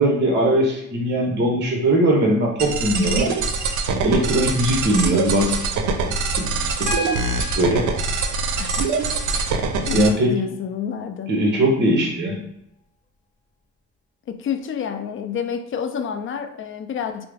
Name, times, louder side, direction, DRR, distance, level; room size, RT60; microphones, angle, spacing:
voice 1, 0.0-3.3 4.0-5.6 6.4-7.1 7.3-7.9 9.9-10.3 11.3-12.4, right 1 dB, 35° right, 0 dB, 0.8 m, -20 dB
sound 1, 2.6-10.1, right 4 dB, 70° right, 0.6 m, -23 dB
Piano, 6.9-10.9 12.4-12.5, left 2 dB, 25° left, 0.8 m, -36 dB
voice 2, 8.6-8.9 9.3-11.3 14.3-17.3, left 7 dB, 45° left, 8 dB, 0.4 m, -29 dB
4.5 x 2.0 x 3.3 m, 0.79 s
cardioid pair, 90°, 30 cm